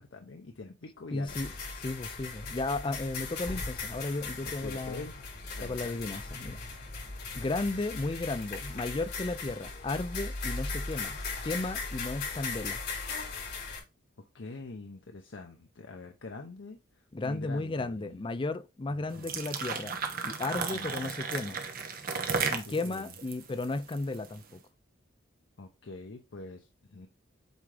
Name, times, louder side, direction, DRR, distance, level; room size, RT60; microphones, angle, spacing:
voice 1, 0.0-1.4 4.6-5.3 5.5-6.0 14.3-16.8 17.2-18.2 19.1-19.4 20.7-21.1 22.4-23.1 25.6-27.1, left 3 dB, 70° left, 0.7 m, -45 dB
voice 2, 1.1-1.5 1.8-5.1 5.6-6.6 7.3-12.8 17.1-19.9 20.2-21.7 22.5-24.6, left 2 dB, 25° left, 0.4 m, -34 dB
sound 1, 1.3-13.8, left 4 dB, 55° left, 3.8 m, -38 dB
sound 2, 19.1-24.4, right 5 dB, 50° right, 1.0 m, -34 dB
8.1 x 3.7 x 3.3 m
head